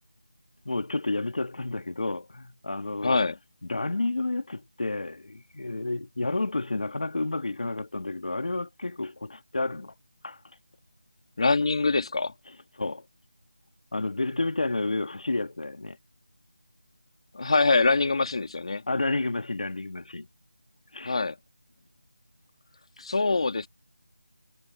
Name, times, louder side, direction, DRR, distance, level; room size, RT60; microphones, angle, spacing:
voice 1, 0.6-3.2 3.6-9.9 10.2-10.4 12.5-13.1 13.9-16.0 18.9-20.3 20.9-21.2 23.0-23.1, left 2 dB, 65° left, 2.4 m, -30 dB
voice 2, 3.0-3.4 11.4-12.3 17.3-18.8 21.0-21.4 23.0-23.7, left 3 dB, 45° left, 2.4 m, -24 dB
figure-of-eight pair, 175°, 4 cm